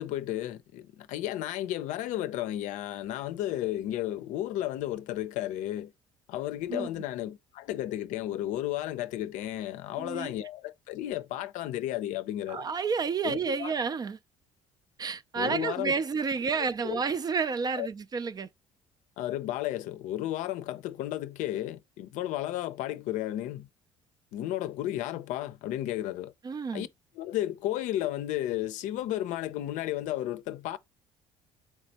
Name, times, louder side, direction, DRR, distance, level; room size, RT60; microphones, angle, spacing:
voice 1, 0.0-5.9 6.3-12.7 13.2-13.7 15.4-16.0 16.8-17.0 17.7-17.9 19.2-23.7 24.3-26.3 26.7-26.9 27.2-30.8, left 13 dB, 75° left, 0.5 m, -33 dB
voice 2, 10.0-10.3 12.5-14.2 15.0-18.5 26.4-26.9, right 5 dB, 30° right, 0.4 m, -30 dB
4.6 x 3.3 x 2.8 m
supercardioid pair, 85°, 13 cm